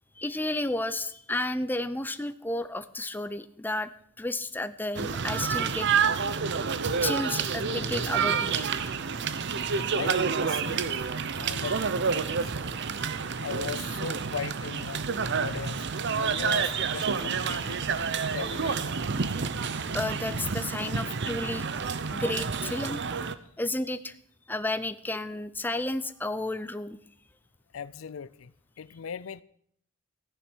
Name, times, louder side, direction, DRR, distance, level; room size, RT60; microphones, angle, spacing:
voice 1, 0.2-3.9 4.2-5.9 7.0-8.7 13.0-13.1 18.2-18.3 19.9-21.7 22.1-23.0 23.6-24.2 24.5-27.0, left 2 dB, 10° left, 0.6 m, -32 dB
sound 1, 5.0-23.4, right 5 dB, 60° right, 0.8 m, -29 dB
voice 2, 9.9-11.0 11.3-12.5 13.4-15.1 15.4-15.9 16.2-19.0 27.7-29.4, left 7 dB, 70° left, 0.5 m, -39 dB
14.5 x 10.0 x 6.2 m
head